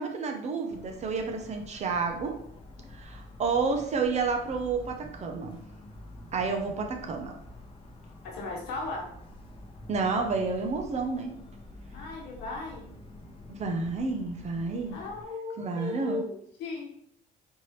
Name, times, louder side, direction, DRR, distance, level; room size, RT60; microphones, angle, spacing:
voice 1, 0.0-2.4 2.9-5.6 6.3-7.3 9.9-11.3 13.5-15.0 15.6-16.2, right 4 dB, 40° right, 4 dB, 0.6 m, -30 dB
Motor vehicle (road) / Siren, 0.7-15.2, left 1 dB, 35° left, 0.8 m, -48 dB
voice 2, 8.2-9.1 11.9-12.9 14.9-16.9, left 3 dB, 85° left, 0 dB, 1.0 m, -36 dB
4.4 x 2.9 x 3.1 m, 0.70 s
cardioid pair, 110°, 17 cm